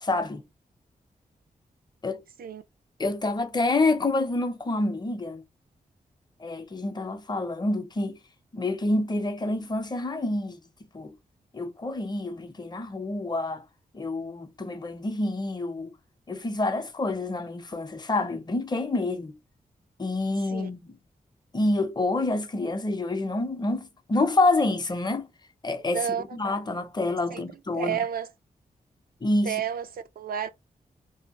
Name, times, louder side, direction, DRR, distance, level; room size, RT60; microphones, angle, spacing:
voice 1, 0.0-0.4 2.0-2.2 3.0-5.4 6.4-8.2 8.5-10.6 10.9-11.1 11.5-13.6 13.9-15.9 16.3-19.4 20.0-21.0 21.5-25.3 25.6-26.1 26.3-28.0 29.2-29.6, left 2 dB, 25° left, 0.6 m, -27 dB
voice 2, 25.9-26.4 27.3-27.5 27.8-28.3 29.4-30.5, right 8 dB, 70° right, 0.4 m, -31 dB
2.7 x 2.1 x 2.9 m
cardioid pair, 55°, 16 cm